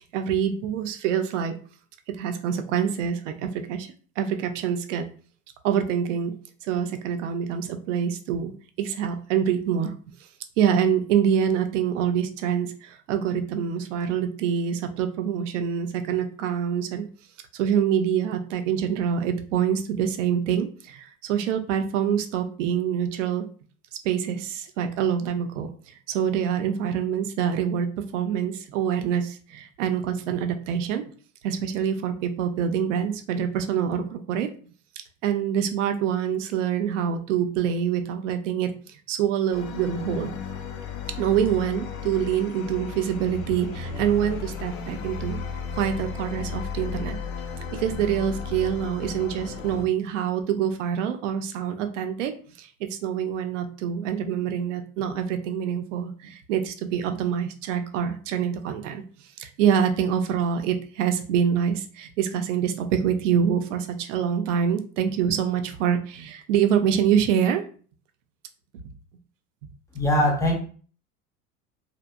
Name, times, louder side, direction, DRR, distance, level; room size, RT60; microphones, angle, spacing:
voice 1, 0.1-1.6 2.1-3.9 4.2-5.1 5.6-6.3 6.6-8.5 8.8-9.9 10.6-17.0 17.5-23.5 24.0-25.7 26.1-31.0 31.4-34.5 35.2-40.3 41.2-45.4 45.7-47.2 47.7-52.3 52.6-59.0 59.4-67.6, right 8 dB, 60° right, 7 dB, 0.5 m, -25 dB
sound 1, 39.5-49.9, left 6 dB, 65° left, 0.5 m, -34 dB
voice 2, 69.9-70.6, left 1 dB, 10° left, 0 dB, 0.4 m, -21 dB
2.6 x 2.1 x 2.3 m, 0.42 s
figure-of-eight pair, 75°, 43 cm